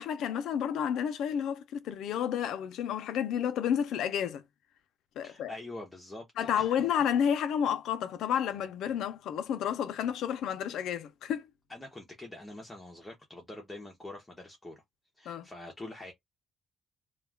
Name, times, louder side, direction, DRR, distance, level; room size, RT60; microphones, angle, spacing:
voice 1, 0.0-4.4 5.2-5.5 6.4-11.4 15.3-15.5, left 8 dB, 80° left, 0.5 m, -31 dB
voice 2, 5.2-6.9 11.7-14.8 15.2-16.1, left 2 dB, 10° left, 0.6 m, -45 dB
2.3 x 2.2 x 3.2 m
cardioid pair, 165°, 0 cm